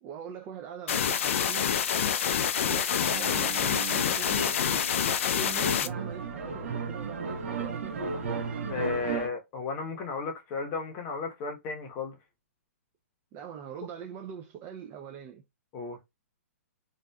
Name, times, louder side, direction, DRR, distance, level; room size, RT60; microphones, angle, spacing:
voice 1, 0.0-1.8 2.6-3.8 4.2-8.3 13.3-15.4, right 8 dB, 30° right, 0.4 m, -43 dB
sound 1, 0.9-5.9, left 8 dB, 65° left, 0.4 m, -27 dB
sound 2, 3.1-9.3, right 5 dB, 65° right, 0.8 m, -35 dB
voice 2, 8.3-12.2 15.7-16.0, left 4 dB, 30° left, 0.8 m, -34 dB
2.6 x 2.4 x 2.2 m
hypercardioid pair, 135°, 8 cm